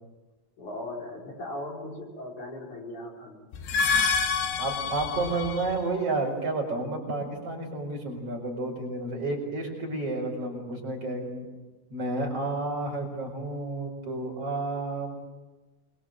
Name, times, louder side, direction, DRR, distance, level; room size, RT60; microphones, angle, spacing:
voice 1, 0.6-3.5, left 1 dB, 50° left, -1 dB, 6.4 m, -38 dB
sound 1, 3.5-5.8, left 5 dB, 80° left, 3.4 m, -27 dB
voice 2, 4.6-11.5 11.9-15.1, right 2 dB, 40° right, 1 dB, 5.6 m, -31 dB
27.5 x 22.5 x 7.7 m, 1.2 s
omnidirectional pair, 4.4 m